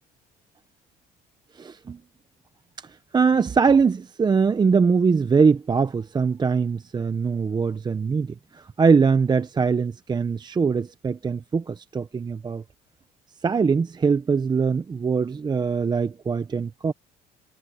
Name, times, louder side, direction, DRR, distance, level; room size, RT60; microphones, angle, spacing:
voice 1, 1.5-2.0 2.8-12.6 13.4-16.9, right 5 dB, 25° right, 0.7 m, -22 dB
cardioid pair, 110°, 17 cm